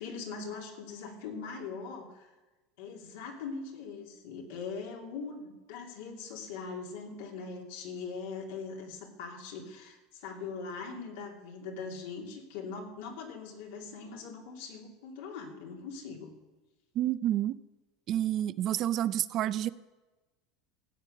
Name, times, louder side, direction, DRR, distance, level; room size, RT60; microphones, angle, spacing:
voice 1, 0.0-2.3 2.8-16.3, left 5 dB, 80° left, 1 dB, 2.7 m, -41 dB
voice 2, 17.0-17.6 18.1-19.7, right 12 dB, 45° right, 16 dB, 0.5 m, -29 dB
15.0 x 8.2 x 6.5 m, 1.1 s
supercardioid pair, 130°, 0 cm